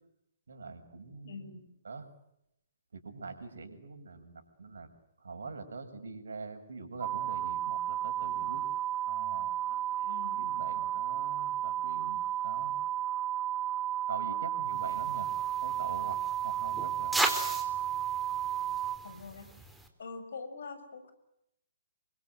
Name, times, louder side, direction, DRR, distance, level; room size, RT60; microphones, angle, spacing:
voice 1, 0.5-1.5 1.8-2.1 2.9-4.9 5.2-8.6 9.1-12.8 14.1-15.3 15.6-17.2, right 4 dB, 65° right, 6 dB, 6.5 m, -44 dB
voice 2, 1.2-1.6 10.1-10.6 19.0-19.5 20.0-21.1, left 4 dB, 60° left, 10 dB, 6.6 m, -44 dB
sound 1, 7.0-19.0, right 11 dB, 25° right, 1.8 m, -33 dB
sound 2, 14.8-19.9, right 1 dB, ahead, 3.8 m, -37 dB
29.5 x 24.5 x 8.0 m, 0.80 s
figure-of-eight pair, 120°, 0 cm